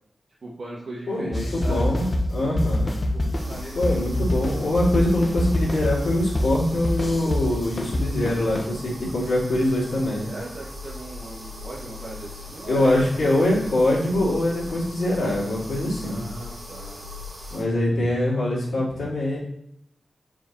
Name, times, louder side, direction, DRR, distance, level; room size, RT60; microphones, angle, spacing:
voice 1, 0.4-1.9 2.3-2.6 3.1-4.0 10.3-12.9 13.2-13.3 13.6-13.7 15.9-17.0, right 2 dB, 65° right, -5 dB, 1.1 m, -38 dB
voice 2, 1.1-2.9 3.7-10.2 12.7-16.2 17.5-19.4, left 1 dB, 85° left, -6 dB, 2.6 m, -23 dB
sound 1, 1.3-8.7, left 1 dB, 35° left, 0.8 m, -26 dB
sound 2, 3.3-17.6, left 2 dB, 35° right, 2.0 m, -39 dB
5.0 x 4.6 x 4.2 m, 0.73 s
wide cardioid pair, 130°, 0 cm